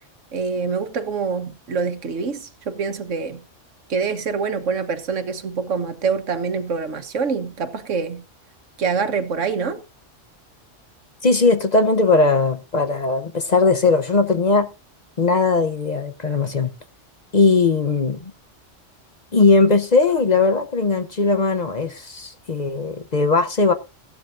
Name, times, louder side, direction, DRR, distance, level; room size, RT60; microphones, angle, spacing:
voice 1, 0.3-3.4 3.9-8.2 8.8-9.8, right 5 dB, 85° right, 1.5 m, -25 dB
voice 2, 11.2-14.7 15.2-16.7 17.3-18.3 19.3-23.7, left 3 dB, 40° left, 0.9 m, -19 dB
15.5 x 12.0 x 2.6 m
omnidirectional pair, 1.3 m